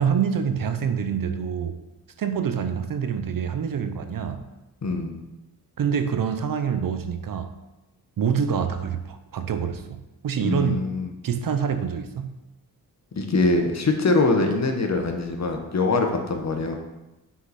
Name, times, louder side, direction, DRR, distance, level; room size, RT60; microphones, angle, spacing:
voice 1, 0.0-1.8 2.2-4.5 5.8-7.6 8.2-10.9 11.2-12.4, right 7 dB, 55° right, 9 dB, 0.6 m, -26 dB
voice 2, 4.8-5.2 10.4-11.1 13.1-16.8, left 3 dB, 40° left, 4 dB, 1.1 m, -23 dB
5.5 x 4.8 x 4.1 m, 1.0 s
cardioid pair, 60°, 41 cm